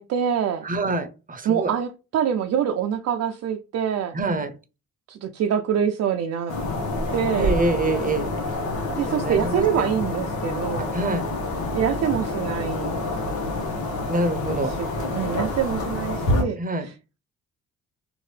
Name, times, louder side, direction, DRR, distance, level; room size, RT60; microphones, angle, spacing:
voice 1, 0.0-0.7 1.5-4.2 5.1-6.5 7.1-7.6 9.0-11.0 11.7-13.0 14.6-16.9, right 8 dB, 55° right, 0.5 m, -25 dB
voice 2, 0.6-1.7 4.1-4.5 7.3-8.4 9.0-9.9 10.8-11.2 14.1-14.7 16.6-16.9, right 2 dB, 30° right, 0.8 m, -26 dB
sound 1, 6.5-16.4, left 2 dB, 70° left, 1.1 m, -27 dB
2.7 x 2.5 x 3.2 m
supercardioid pair, 65°, 30 cm